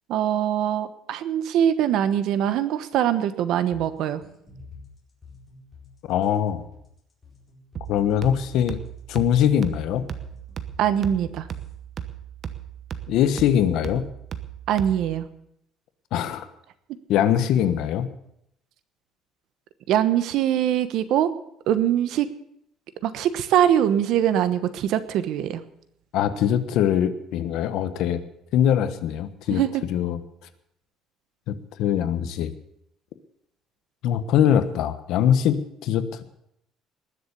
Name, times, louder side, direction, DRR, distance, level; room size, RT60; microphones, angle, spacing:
voice 1, 0.1-4.2 10.8-11.5 14.7-15.3 19.9-21.3 21.7-22.3 23.0-25.6 29.5-29.7, right 10 dB, 60° right, 13 dB, 1.1 m, -22 dB
sound 1, 3.7-11.7, left 4 dB, 20° left, 4.4 m, -48 dB
voice 2, 6.1-6.6 7.9-8.8 9.1-10.1 13.1-14.0 16.1-16.5 17.1-18.1 26.1-28.2 28.5-29.6 29.9-30.2 31.5-32.5 34.0-36.2, left 9 dB, 60° left, 12 dB, 1.2 m, -22 dB
sound 2, 7.8-15.3, right 9 dB, 35° right, 1.0 m, -37 dB
20.0 x 7.3 x 8.3 m, 0.75 s
cardioid pair, 165°, 0 cm